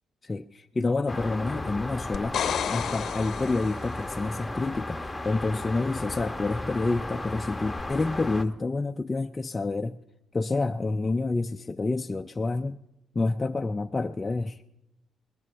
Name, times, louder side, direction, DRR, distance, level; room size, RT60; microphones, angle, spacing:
voice 1, 0.2-2.4 2.7-10.0 10.3-12.8 13.2-14.6, left 3 dB, 25° left, 4 dB, 0.5 m, -28 dB
sound 1, 1.1-8.4, left 2 dB, 10° left, 1.1 m, -35 dB
sound 2, 2.1-4.1 7.8-7.9, left 8 dB, 65° left, 0.7 m, -31 dB
20.5 x 19.5 x 3.4 m, 0.90 s
cardioid pair, 90°, 0 cm